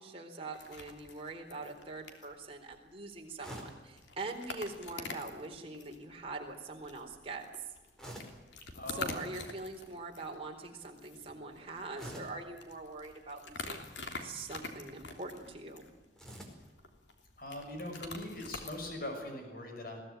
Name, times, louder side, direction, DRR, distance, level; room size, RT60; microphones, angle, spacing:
voice 1, 0.0-7.5 8.9-13.9 14.2-15.8, right 3 dB, 30° right, 1 dB, 4.1 m, -43 dB
sound 1, 0.5-19.1, left 3 dB, 80° left, 3.1 m, -47 dB
sound 2, 3.4-3.9 5.5-5.9 8.0-8.5 9.1-9.3 11.9-12.4 13.7-14.2 16.2-16.7, equal, 5° left, 4.7 m, -47 dB
voice 2, 8.7-9.2 17.4-20.0, left 1 dB, 55° left, 4 dB, 6.1 m, -41 dB
22.0 x 17.0 x 9.2 m, 1.2 s
head